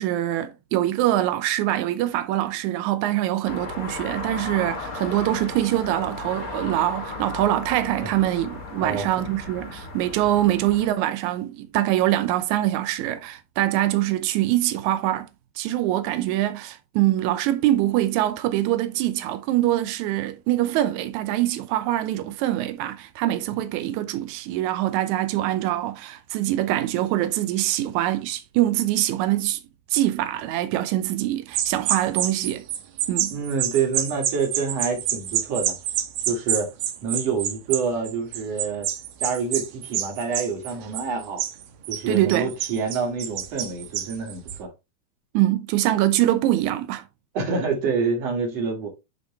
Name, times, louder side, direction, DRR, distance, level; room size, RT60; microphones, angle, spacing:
voice 1, 0.0-15.3 15.6-29.6 29.9-32.6 33.1-33.3 42.1-42.5 45.3-47.0, right 14 dB, 90° right, 1.7 m, -24 dB
sound 1, 3.4-10.9, left 3 dB, 85° left, 0.7 m, -35 dB
voice 2, 8.8-9.1 23.5-23.6 33.3-35.8 36.3-36.7 37.0-38.9 39.2-41.4 41.9-44.7 47.3-48.9, right 5 dB, 50° right, 2.8 m, -27 dB
sound 2, 31.5-44.6, right 10 dB, 75° right, 2.3 m, -28 dB
11.0 x 3.8 x 3.2 m
omnidirectional pair, 4.3 m